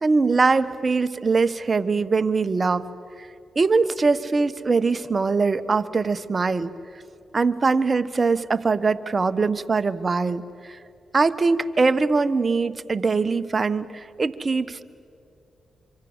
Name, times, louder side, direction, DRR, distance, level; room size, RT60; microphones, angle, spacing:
voice 1, 0.0-2.8 3.6-6.7 7.3-10.4 11.1-14.8, right 4 dB, 40° right, 12 dB, 1.1 m, -22 dB
25.5 x 25.0 x 8.1 m, 2.5 s
supercardioid pair, 50°, 0 cm